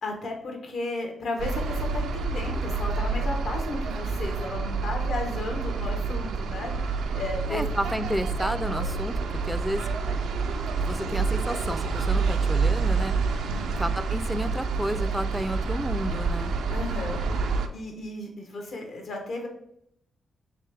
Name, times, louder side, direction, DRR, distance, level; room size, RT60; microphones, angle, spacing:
voice 1, 0.0-7.6 13.5-13.9 16.7-17.2 17.7-19.5, left 2 dB, 70° left, 2 dB, 0.9 m, -34 dB
sound 1, 1.4-17.7, right 4 dB, 80° right, 0.3 m, -28 dB
voice 2, 7.5-9.9 10.8-13.1 13.8-16.5, equal, ahead, 11 dB, 0.3 m, -31 dB
3.2 x 3.1 x 3.3 m, 0.75 s
supercardioid pair, 50°, 0 cm